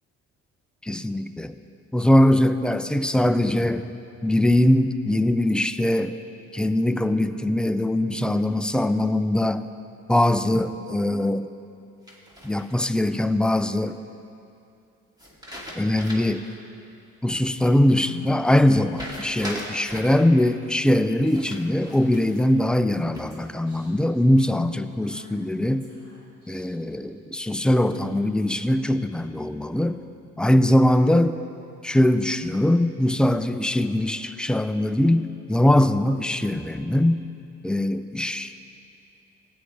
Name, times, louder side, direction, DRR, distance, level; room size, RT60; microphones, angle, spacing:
voice 1, 0.8-1.6 1.9-3.9 4.2-6.2 6.5-9.7 10.1-11.5 12.4-14.0 15.8-16.5 17.2-25.9 26.5-30.0 30.4-31.4 31.8-37.2 37.6-38.5, left 1 dB, 5° left, 10 dB, 0.3 m, -21 dB
sound 1, 12.1-13.0 15.2-16.5 16.8-16.9 18.9-20.2 21.3-22.5 22.9-23.5, equal, 15° right, 2.3 m, -39 dB
Female speech woman speaking / Whispering, 17.9-19.4 20.4-20.8 21.3-21.4 21.7-22.2 23.0-24.1 25.0-27.0, left 1 dB, 50° right, 3.0 m, -47 dB
16.5 x 9.1 x 3.3 m, 2.6 s
cardioid pair, 90°, 30 cm